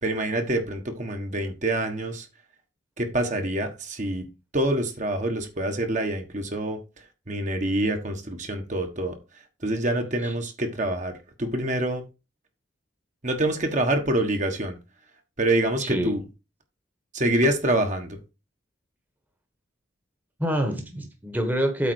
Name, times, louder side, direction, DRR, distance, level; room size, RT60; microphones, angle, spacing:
voice 1, 0.0-2.3 3.0-4.2 4.5-6.8 7.3-9.2 9.6-12.0 13.2-14.8 15.4-16.2 17.1-18.2, right 1 dB, 40° right, 1.4 m, -26 dB
voice 2, 15.8-16.1 20.4-21.9, equal, 10° right, 1.3 m, -26 dB
8.4 x 4.0 x 6.4 m
head